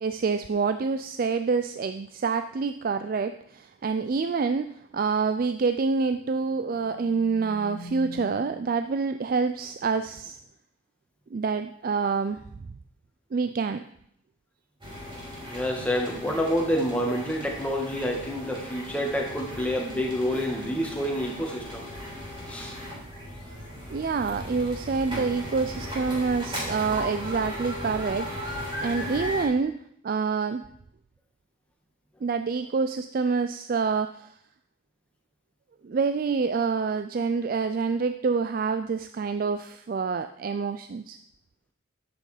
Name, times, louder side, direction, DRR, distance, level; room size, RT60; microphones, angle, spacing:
voice 1, 0.0-10.4 11.3-12.4 13.3-13.8 23.9-29.8 30.0-30.6 32.2-34.4 35.8-41.2, right 4 dB, 45° right, 9 dB, 0.3 m, -27 dB
sound 1, 6.4-9.0, equal, 70° left, 1.3 m, -45 dB
sound 2, 14.8-29.5, equal, 25° right, 3.4 m, -37 dB
voice 2, 15.4-21.9 22.5-22.8, equal, 5° left, 0 dB, 1.6 m, -28 dB
10.0 x 7.7 x 4.9 m, 0.71 s
head